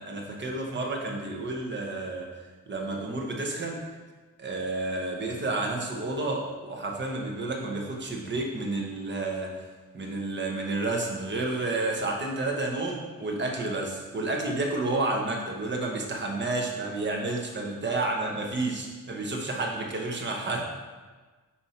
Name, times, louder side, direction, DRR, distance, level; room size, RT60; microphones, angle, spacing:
voice 1, 0.0-2.3 2.7-3.8 4.4-9.6 9.9-20.6, right 2 dB, 35° right, 0 dB, 1.0 m, -30 dB
5.7 x 4.3 x 4.4 m, 1.3 s
wide cardioid pair, 140°, 33 cm